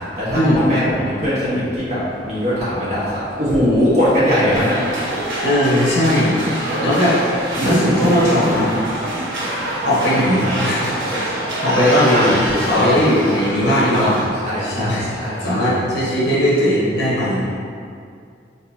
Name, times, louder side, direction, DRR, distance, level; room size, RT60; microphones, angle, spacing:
voice 1, 0.2-3.1 3.4-4.7 12.1-12.9 13.6-15.7, equal, 40° right, -10 dB, 1.4 m, -20 dB
sound 1, 4.5-14.3, right 1 dB, 80° right, 1.2 m, -24 dB
voice 2, 5.4-7.2 7.6-8.7 9.8-10.9 11.6-14.1 14.6-15.1 15.4-17.5, equal, 65° left, -8 dB, 1.2 m, -18 dB
4.3 x 4.0 x 2.8 m, 2.3 s
head